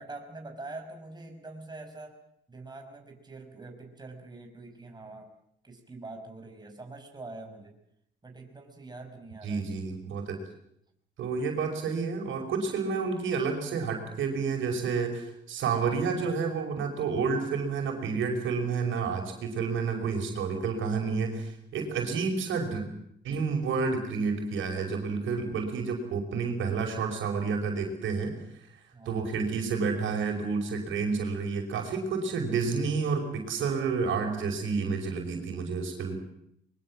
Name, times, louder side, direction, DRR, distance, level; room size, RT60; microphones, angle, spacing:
voice 1, 0.0-2.2 2.5-5.3 5.6-7.8 8.2-9.6 28.9-29.3, right 2 dB, 20° right, 3 dB, 5.6 m, -44 dB
voice 2, 9.4-10.4 11.2-22.9 23.2-28.3 29.1-36.2, right 5 dB, 75° right, 3 dB, 5.5 m, -30 dB
23.0 x 23.0 x 7.6 m, 0.74 s
cardioid pair, 90°, 20 cm